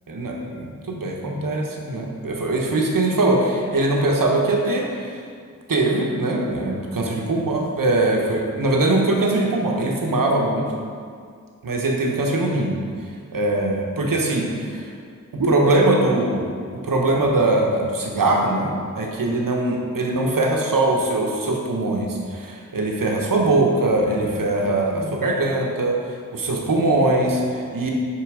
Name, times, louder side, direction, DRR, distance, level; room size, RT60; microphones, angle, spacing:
voice 1, 0.1-5.2 5.7-10.8 11.6-12.7 13.3-14.9 15.3-16.5 16.8-26.0 26.3-27.9, right 2 dB, 90° right, 0 dB, 1.0 m, -21 dB
6.0 x 5.7 x 4.9 m, 2.1 s
cardioid pair, 45°, 33 cm